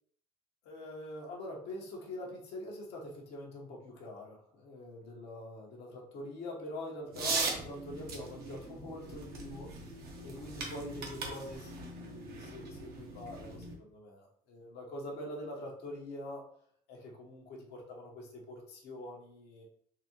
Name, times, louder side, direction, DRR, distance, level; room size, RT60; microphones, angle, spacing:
voice 1, 0.6-9.7 10.2-16.4 16.9-19.6, left 1 dB, 80° left, -2 dB, 1.2 m, -44 dB
sound 1, 7.1-13.7, right 3 dB, 65° right, 1.0 m, -40 dB
4.0 x 2.7 x 2.9 m, 0.63 s
cardioid pair, 110°, 17 cm